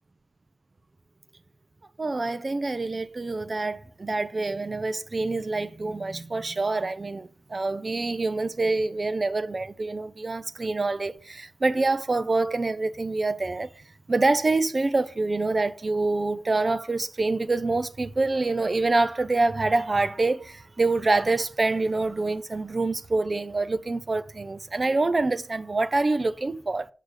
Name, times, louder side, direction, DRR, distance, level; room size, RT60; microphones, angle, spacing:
voice 1, 2.0-13.7 14.1-26.9, right 3 dB, 35° right, 0.6 m, -26 dB
8.0 x 6.5 x 3.9 m
wide cardioid pair, 110°, 0 cm